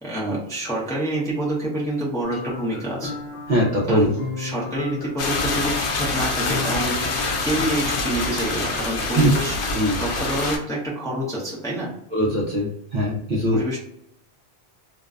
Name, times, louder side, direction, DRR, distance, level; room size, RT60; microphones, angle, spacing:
voice 1, 0.0-3.2 3.9-4.1 4.4-7.1 7.4-9.6 10.0-11.9 13.5-13.8, right 1 dB, 5° left, -6 dB, 0.6 m, -27 dB
sound 1, 2.2-8.6, left 4 dB, 60° left, 0.7 m, -35 dB
voice 2, 3.5-4.1 9.2-9.3 9.7-10.0 12.1-13.6, equal, 55° right, -4 dB, 0.6 m, -21 dB
sound 2, 5.2-10.6, left 3 dB, 85° left, 0.9 m, -25 dB
2.5 x 2.1 x 2.3 m, 0.74 s
omnidirectional pair, 1.1 m